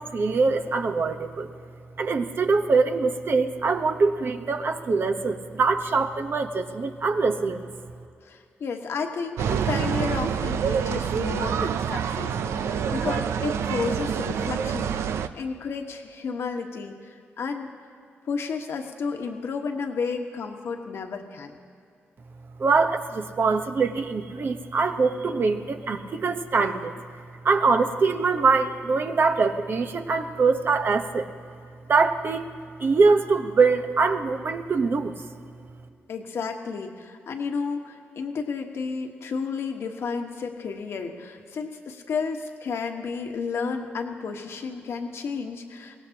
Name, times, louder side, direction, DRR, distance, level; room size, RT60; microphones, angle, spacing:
voice 1, 0.0-1.5 2.0-7.7 22.6-26.9 27.4-31.3 31.9-32.5 32.8-35.2, right 4 dB, 55° right, 6 dB, 1.1 m, -23 dB
voice 2, 8.2-17.7 18.3-21.6 36.1-46.0, left 5 dB, 70° left, 4 dB, 1.4 m, -32 dB
sound 1, 9.4-15.3, right 7 dB, 80° right, 0.5 m, -27 dB
22.5 x 17.5 x 2.9 m, 2.4 s
cardioid pair, 70°, 5 cm